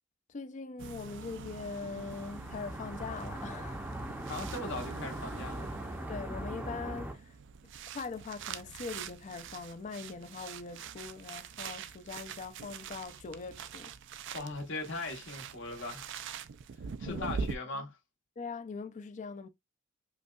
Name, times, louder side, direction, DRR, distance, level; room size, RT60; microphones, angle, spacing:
voice 1, 0.3-4.1 6.1-7.4 7.9-13.9 17.1-17.4 17.7-17.8 18.4-19.5, left 4 dB, 40° left, 0.4 m, -42 dB
sound 1, 0.8-17.6, right 6 dB, 60° right, 0.4 m, -44 dB
sound 2, 1.5-7.1, right 1 dB, 10° right, 0.6 m, -41 dB
voice 2, 4.3-5.7 14.3-16.1 17.0-18.0, left 2 dB, 65° left, 1.1 m, -39 dB
5.2 x 2.3 x 2.3 m
head